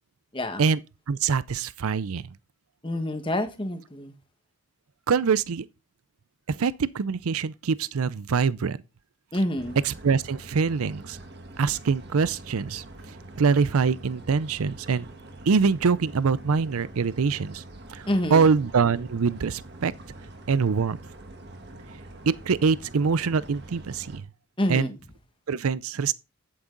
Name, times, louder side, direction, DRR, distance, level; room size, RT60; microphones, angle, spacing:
voice 1, 0.3-0.7 2.8-4.1 9.3-9.8 18.1-18.5 24.6-25.0, left 1 dB, 20° left, 1.3 m, -27 dB
voice 2, 1.1-2.2 5.1-5.6 6.5-8.8 9.9-11.2 11.6-12.8 13.4-15.1 15.5-17.6 17.9-19.9 20.5-21.0 22.3-24.2 24.7-24.9 25.5-26.1, right 5 dB, 80° right, 0.5 m, -24 dB
sound 1, 9.6-24.2, right 1 dB, 50° right, 1.6 m, -44 dB
9.9 x 8.8 x 3.9 m
head